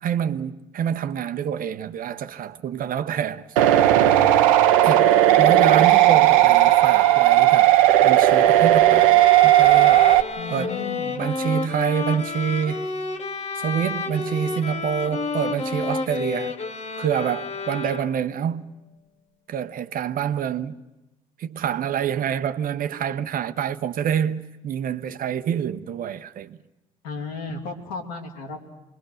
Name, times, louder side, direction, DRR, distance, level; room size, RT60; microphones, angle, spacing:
voice 1, 0.0-3.5 4.8-5.1 5.4-7.7 8.0-10.0 10.5-10.8 11.2-12.9 13.6-16.6 17.0-18.6 19.5-20.8 21.4-26.6, right 8 dB, 60° right, 0.9 m, -27 dB
sound 1, 3.6-10.2, right 13 dB, 90° right, 0.8 m, -15 dB
sound 2, 9.2-18.4, left 3 dB, 40° left, 1.4 m, -30 dB
voice 2, 10.4-11.2 27.0-28.7, left 4 dB, 80° left, 2.8 m, -34 dB
26.0 x 20.5 x 6.5 m
hypercardioid pair, 55°, 17 cm